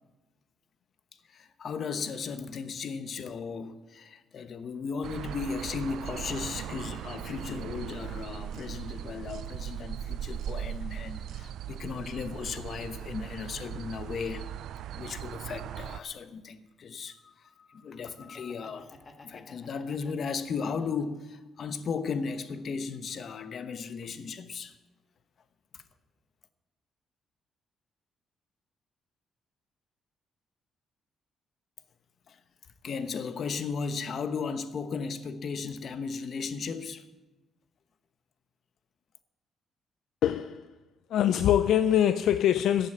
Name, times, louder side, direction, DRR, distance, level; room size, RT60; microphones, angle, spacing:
voice 1, 1.3-14.5 15.0-18.9 19.2-24.8 25.7-25.8 32.3-32.4 32.8-37.1, left 5 dB, 55° left, 1.1 m, -36 dB
sound 1, 5.0-16.0, right 10 dB, 80° right, 0.4 m, -39 dB
Laughter, 18.2-21.2 21.7-22.8, left 3 dB, 35° left, 1.6 m, -54 dB
voice 2, 40.2-40.7 41.1-42.9, left 10 dB, 75° left, 0.5 m, -23 dB
15.0 x 8.1 x 7.5 m
cardioid pair, 90°, 0 cm